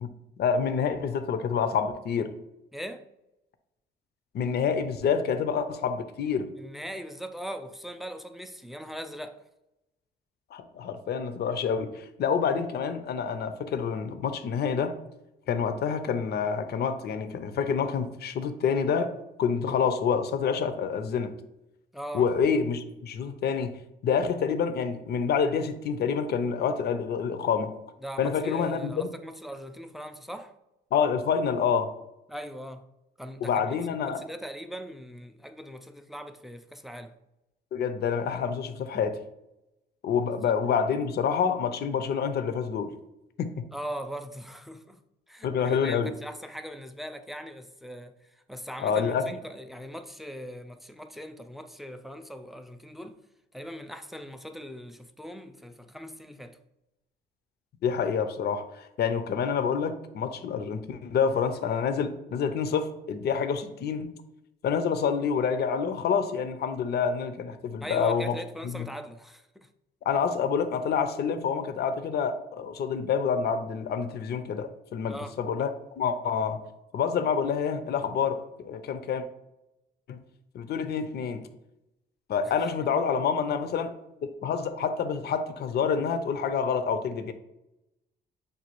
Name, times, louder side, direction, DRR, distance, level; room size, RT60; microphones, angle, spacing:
voice 1, 0.4-2.3 4.3-6.5 10.5-14.9 15.5-21.3 22.1-27.7 28.2-29.1 30.9-31.9 33.4-34.2 37.7-39.2 40.0-42.9 43.4-43.5 45.4-46.1 48.8-49.2 57.8-64.1 64.6-68.4 68.7-68.9 70.1-75.7 76.0-76.6 76.9-79.2 80.1-80.2 80.5-81.4 82.3-83.9 84.2-87.3, left 6 dB, 55° left, 0.5 m, -27 dB
voice 2, 2.7-3.1 6.6-9.4 21.9-22.3 28.0-30.5 32.3-32.9 33.2-37.2 43.7-45.0 45.3-53.2 53.5-56.6 67.8-69.7 75.1-75.3 82.4-82.7, equal, ahead, 0.3 m, -40 dB
6.6 x 2.3 x 3.0 m
cardioid pair, 90°, 20 cm